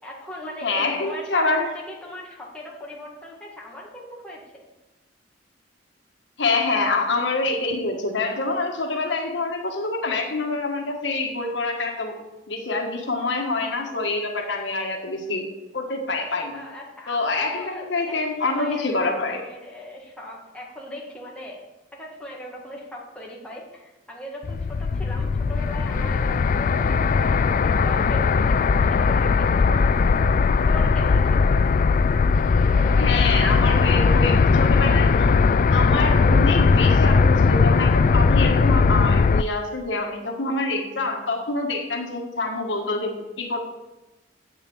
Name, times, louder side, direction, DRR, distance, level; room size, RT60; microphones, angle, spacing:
voice 1, 0.0-4.4 16.5-18.1 18.4-21.6 21.9-30.2 30.7-31.8 32.5-34.3, left 1 dB, 5° left, -4 dB, 2.0 m, -39 dB
voice 2, 0.6-1.7 6.4-12.2 12.5-15.5 15.7-16.6 17.1-19.4 33.0-35.2 35.7-43.6, left 3 dB, 75° left, 2 dB, 1.5 m, -26 dB
sound 1, 24.4-39.4, left 4 dB, 45° left, 0.3 m, -19 dB
8.3 x 7.3 x 7.2 m, 1.0 s
head